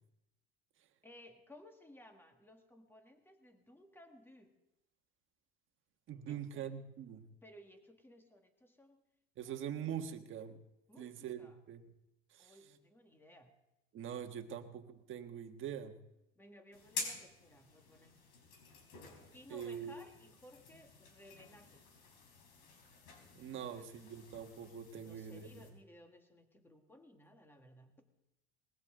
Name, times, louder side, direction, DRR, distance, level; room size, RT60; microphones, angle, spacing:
voice 1, 1.0-4.5 6.3-6.7 7.4-9.0 9.4-10.0 10.9-11.6 12.4-13.5 16.4-18.2 19.3-21.8 23.5-23.9 25.0-27.9, left 1 dB, 5° left, 5 dB, 1.8 m, -59 dB
voice 2, 6.1-7.3 9.4-10.5 11.0-11.4 11.7-11.8 12.3-12.6 13.9-16.0 19.5-19.9 23.3-25.6, right 9 dB, 40° right, 6 dB, 1.5 m, -43 dB
sound 1, 16.7-25.7, left 4 dB, 70° left, 4.4 m, -50 dB
20.5 x 16.0 x 3.8 m, 0.91 s
supercardioid pair, 130°, 32 cm